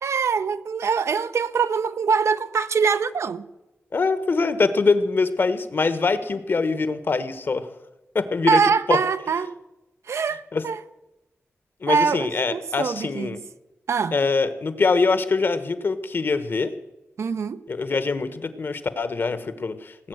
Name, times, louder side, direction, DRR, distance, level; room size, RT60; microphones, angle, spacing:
voice 1, 0.0-3.5 8.5-9.6 10.1-10.8 11.9-13.4 13.9-14.1 17.2-17.6, right 5 dB, 85° right, 0.7 m, -23 dB
voice 2, 3.9-7.7 8.1-8.6 8.9-9.0 10.5-10.6 11.8-13.4 14.1-16.7 17.7-20.1, left 4 dB, 50° left, 1.1 m, -23 dB
18.5 x 8.4 x 7.9 m
wide cardioid pair, 165°, 5 cm